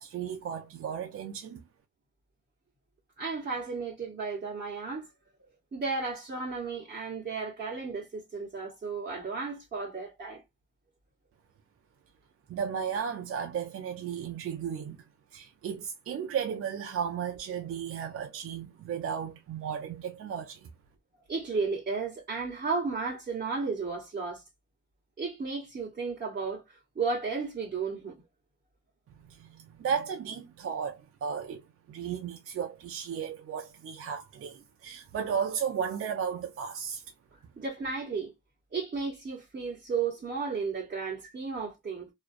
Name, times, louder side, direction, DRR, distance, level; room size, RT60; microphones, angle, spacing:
voice 1, 0.0-1.6 12.5-15.0 15.3-20.7 29.3-37.0, right 7 dB, 50° right, 0.5 m, -34 dB
voice 2, 3.2-5.1 5.7-10.4 21.3-24.4 25.2-28.1 37.5-38.3 38.7-42.1, right 4 dB, 30° right, 1.0 m, -34 dB
2.4 x 2.2 x 2.4 m
cardioid pair, 90°, 30 cm